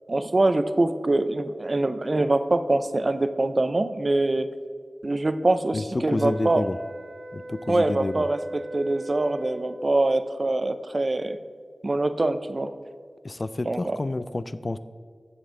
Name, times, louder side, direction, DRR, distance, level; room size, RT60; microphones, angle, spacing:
voice 1, 0.1-4.5 5.0-6.7 7.7-11.4 11.8-12.7 13.7-14.0, right 2 dB, 45° right, 11 dB, 0.5 m, -24 dB
voice 2, 5.7-6.8 7.3-8.3 13.2-14.8, left 2 dB, 40° left, 13 dB, 0.3 m, -29 dB
sound 1, 6.1-10.0, right 1 dB, 80° right, 0.7 m, -40 dB
14.5 x 5.3 x 3.8 m, 2.1 s
wide cardioid pair, 70°, 0 cm